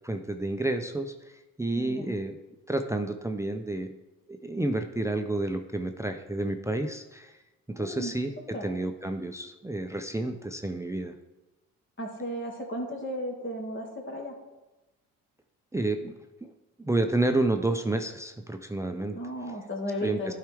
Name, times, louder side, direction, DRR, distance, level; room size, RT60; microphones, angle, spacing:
voice 1, 0.0-2.4 2.7-4.0 4.3-7.4 7.7-11.2 15.7-16.1 16.8-19.2 20.0-20.3, right 2 dB, 10° right, 6 dB, 0.6 m, -30 dB
voice 2, 1.8-2.2 7.8-8.1 8.5-8.7 12.0-14.4 19.1-20.3, equal, 30° left, 1 dB, 2.1 m, -34 dB
12.0 x 4.8 x 3.5 m, 1.1 s
supercardioid pair, 60°, 38 cm